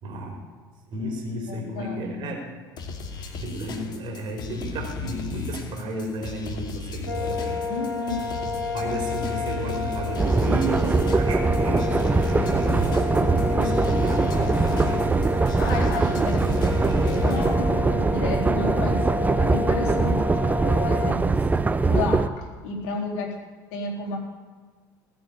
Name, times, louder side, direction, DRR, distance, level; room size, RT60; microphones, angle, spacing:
voice 1, 0.0-0.4 0.9-2.4 3.1-7.6 8.1-15.1, equal, 45° right, 2 dB, 4.7 m, -33 dB
voice 2, 1.5-2.2 7.7-8.4 15.6-19.0 19.4-21.4 21.9-23.3 23.7-24.2, left 3 dB, 60° left, -1 dB, 4.0 m, -32 dB
sound 1, 2.8-17.5, left 5 dB, 40° left, 2.6 m, -36 dB
sound 2, 7.1-21.1, left 3 dB, 85° left, 1.5 m, -31 dB
sound 3, 10.2-22.3, right 3 dB, 15° right, 0.7 m, -22 dB
19.5 x 7.8 x 8.8 m, 1.5 s
figure-of-eight pair, 65°, 11 cm